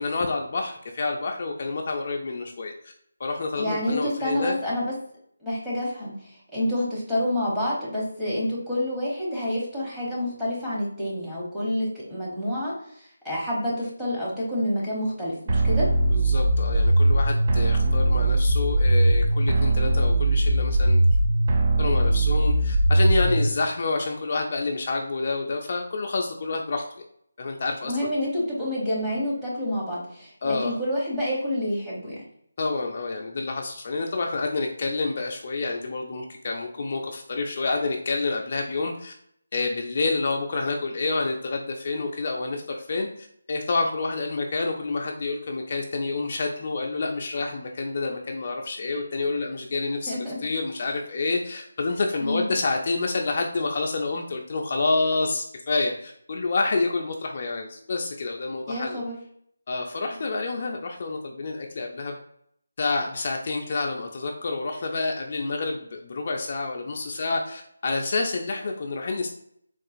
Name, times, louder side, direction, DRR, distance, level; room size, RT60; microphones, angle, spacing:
voice 1, 0.0-2.9 3.2-4.5 16.1-21.0 21.8-26.8 27.4-27.9 30.4-30.7 32.6-39.1 39.5-50.1 50.4-59.0 59.7-62.2 62.8-69.3, left 3 dB, 45° left, 1 dB, 0.3 m, -28 dB
voice 2, 3.6-4.9 5.4-12.7 13.2-15.9 27.8-32.2 50.1-50.4 52.2-52.5 58.7-59.2, left 1 dB, 5° right, -9 dB, 0.8 m, -28 dB
sound 1, 15.5-23.5, right 1 dB, 45° right, 0.4 m, -20 dB
3.7 x 2.4 x 2.4 m, 0.67 s
figure-of-eight pair, 165°, 0 cm